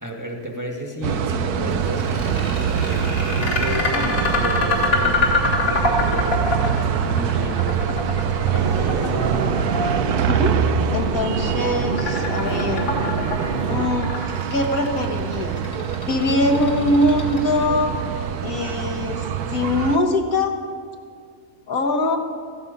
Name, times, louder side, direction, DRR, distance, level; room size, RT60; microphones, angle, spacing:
voice 1, 0.0-5.2 5.7-9.8 11.3-11.6, equal, 10° right, 1 dB, 1.8 m, -32 dB
sound 1, 1.0-20.0, right 8 dB, 75° right, 1.3 m, -25 dB
sound 2, 1.7-17.8, left 2 dB, 85° left, 3.4 m, -25 dB
sound 3, 8.6-13.9, right 4 dB, 40° right, 1.0 m, -27 dB
voice 2, 10.3-10.6 10.9-12.9 13.7-14.1 14.5-15.6 16.1-17.9 18.4-20.5 21.7-22.2, left 2 dB, 65° left, 2 dB, 1.8 m, -22 dB
17.0 x 14.5 x 5.4 m, 2.1 s
omnidirectional pair, 1.7 m